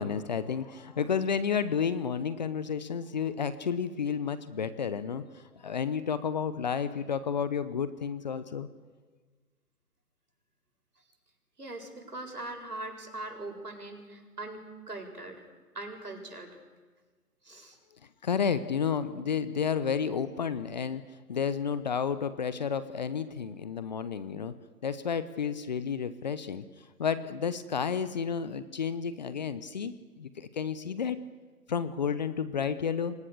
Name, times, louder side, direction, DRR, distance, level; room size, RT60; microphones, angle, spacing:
voice 1, 0.0-8.7 18.2-21.0 21.3-24.5 24.8-26.6 27.0-31.2 31.7-33.1, left 6 dB, 30° left, 14 dB, 1.0 m, -31 dB
voice 2, 11.6-15.5 15.7-16.6 17.4-17.8, right 2 dB, 75° right, 3 dB, 7.6 m, -41 dB
29.0 x 25.0 x 6.8 m, 1.4 s
figure-of-eight pair, 140°, 46 cm